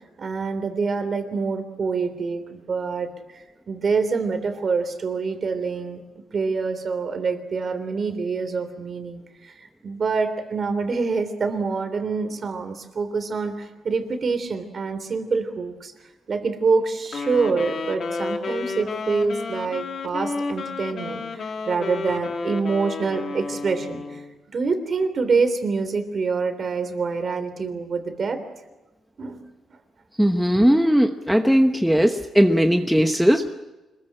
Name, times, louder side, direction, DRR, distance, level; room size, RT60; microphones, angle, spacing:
voice 1, 0.2-3.1 3.3-6.0 6.3-15.9 16.3-24.2 24.5-28.4 29.2-29.4 30.5-30.7, right 4 dB, 40° right, 8 dB, 3.3 m, -26 dB
Wind instrument woodwind instrument, 17.0-24.3, left 4 dB, 45° left, 2.2 m, -31 dB
voice 2, 30.2-33.6, equal, ahead, 5 dB, 1.0 m, -18 dB
26.0 x 21.0 x 8.8 m, 1.1 s
cardioid pair, 150°, 0 cm